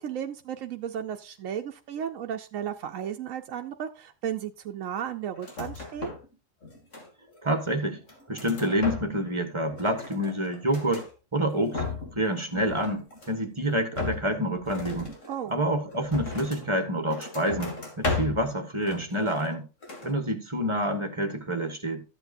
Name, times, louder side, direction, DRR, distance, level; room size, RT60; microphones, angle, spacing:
voice 1, 0.0-6.1 15.3-15.5, right 9 dB, 85° right, 1.1 m, -34 dB
sound 1, 5.4-6.3 6.6-7.4 7.9-9.4 9.6-11.1 11.5-12.2 12.5-13.5 13.9-16.7 17.1-18.5 18.8-19.6 19.8-20.1, left 3 dB, 70° left, 3.0 m, -36 dB
voice 2, 7.4-8.0 8.3-11.8 12.1-15.1 15.5-19.7 20.0-22.0, right 1 dB, 25° right, 1.4 m, -28 dB
13.5 x 8.1 x 2.5 m
omnidirectional pair, 1.3 m